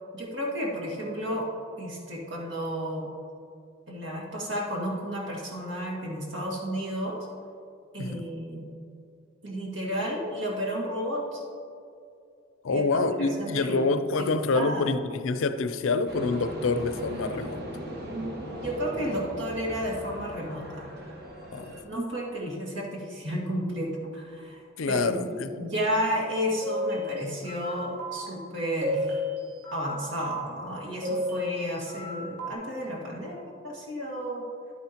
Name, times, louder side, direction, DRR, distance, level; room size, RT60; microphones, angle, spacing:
voice 1, 0.1-1.5 1.8-3.1 3.9-7.3 7.9-8.7 9.4-11.4 12.7-13.8 14.2-15.0 18.0-20.9 21.8-29.2 29.7-34.4, equal, 65° right, -2 dB, 1.9 m, -32 dB
voice 2, 12.6-17.6 21.5-21.8 24.8-25.5, left 3 dB, 85° left, 11 dB, 0.5 m, -27 dB
sound 1, 16.1-21.8, equal, 50° right, 1.1 m, -39 dB
sound 2, 26.6-27.7 28.0-28.3 28.8-29.9 30.2-30.5 31.0-32.1 32.4-32.5, left 1 dB, 85° right, 2.5 m, -32 dB
11.0 x 9.3 x 2.9 m, 2.4 s
head